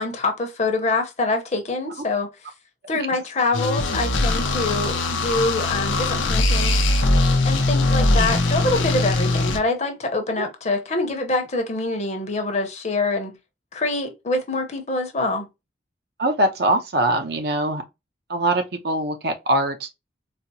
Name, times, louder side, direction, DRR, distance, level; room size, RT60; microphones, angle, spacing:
voice 1, 0.0-2.3 2.9-6.8 7.4-13.4 13.7-15.5, left 2 dB, 35° left, 0.7 m, -25 dB
sound 1, 3.5-9.6, left 2 dB, 90° left, 0.6 m, -21 dB
voice 2, 16.2-17.8 18.3-19.9, right 1 dB, 55° right, 0.7 m, -22 dB
4.2 x 2.0 x 2.6 m
head